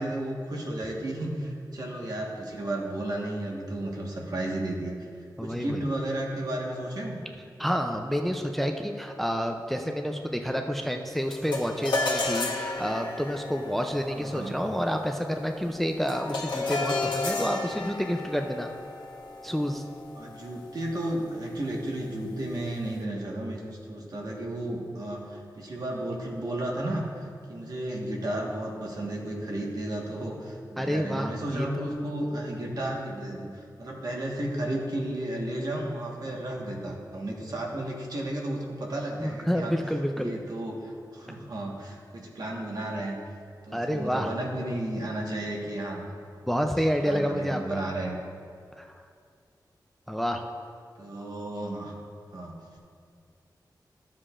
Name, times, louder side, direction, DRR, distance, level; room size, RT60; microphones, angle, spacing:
voice 1, 0.0-5.0 5.4-7.2 14.1-14.5 20.1-23.6 23.9-39.7 40.1-43.2 43.6-46.0 47.0-48.2 51.0-51.9 52.3-52.6, right 1 dB, 60° right, -1 dB, 1.4 m, -33 dB
voice 2, 5.4-5.8 7.6-18.7 19.4-19.8 30.8-31.7 39.2-40.3 43.7-44.3 46.5-47.8 48.8-48.9 50.1-50.4, equal, ahead, 4 dB, 0.4 m, -29 dB
sound 1, 11.3-20.8, left 3 dB, 80° left, 1.1 m, -33 dB
13.0 x 7.4 x 2.5 m, 2.3 s
wide cardioid pair, 105°, 8 cm